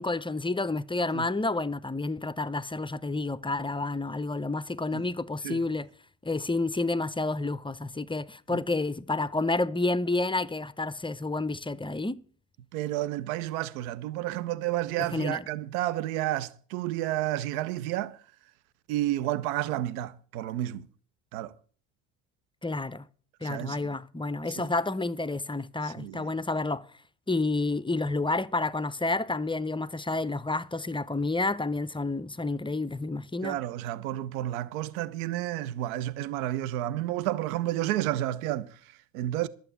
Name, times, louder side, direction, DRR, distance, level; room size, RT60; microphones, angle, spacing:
voice 1, 0.0-5.9 6.2-12.2 15.1-15.4 22.6-23.1 23.4-26.8 27.3-33.6, left 2 dB, 10° left, 0.6 m, -30 dB
voice 2, 12.7-18.2 18.9-20.9 21.3-21.5 23.4-23.9 24.6-24.7 25.8-26.3 33.4-39.5, right 14 dB, 80° right, 0.7 m, -31 dB
12.0 x 7.9 x 8.1 m
hypercardioid pair, 60°, 42 cm